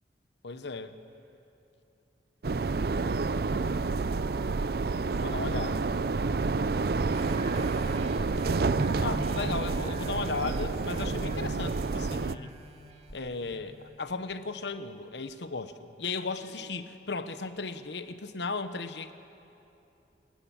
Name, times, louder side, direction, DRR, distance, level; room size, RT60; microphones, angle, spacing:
voice 1, 0.4-1.0 5.2-5.9 9.0-12.5 13.1-15.7 16.0-19.1, left 3 dB, 75° left, 10 dB, 1.0 m, -35 dB
voice 2, 1.1-1.4 5.0-6.6 16.4-16.7, right 1 dB, 75° right, -2 dB, 4.3 m, -55 dB
sound 1, 2.4-12.3, right 4 dB, 55° right, 0.5 m, -29 dB
sound 2, 7.1-14.3 14.9-15.0, equal, 35° right, 2.0 m, -42 dB
28.5 x 17.5 x 7.2 m, 2.9 s
head